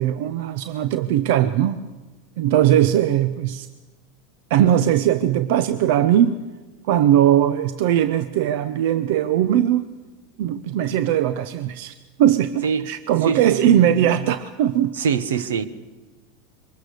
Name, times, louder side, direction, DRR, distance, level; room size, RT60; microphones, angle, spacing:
voice 1, 0.0-1.8 2.4-3.7 4.5-6.3 6.9-9.9 10.4-11.9 12.2-15.0, right 11 dB, 65° right, 0.8 m, -19 dB
voice 2, 13.2-13.7 14.9-15.7, right 6 dB, 80° right, 1.1 m, -24 dB
23.5 x 20.0 x 6.7 m
hypercardioid pair, 95°, 0 cm